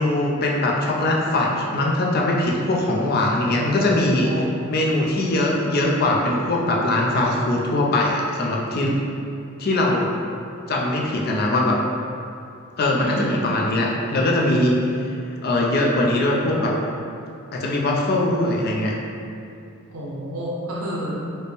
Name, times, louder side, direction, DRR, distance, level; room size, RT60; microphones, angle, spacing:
voice 1, 0.0-4.4 4.7-9.0 9.6-10.1 10.7-11.8 12.8-14.8 15.4-16.8 17.5-19.0, left 1 dB, 45° left, -2 dB, 0.4 m, -21 dB
voice 2, 3.7-4.5 13.0-13.5 19.9-21.2, equal, 85° right, -5 dB, 0.7 m, -30 dB
4.1 x 2.1 x 3.3 m, 2.6 s
head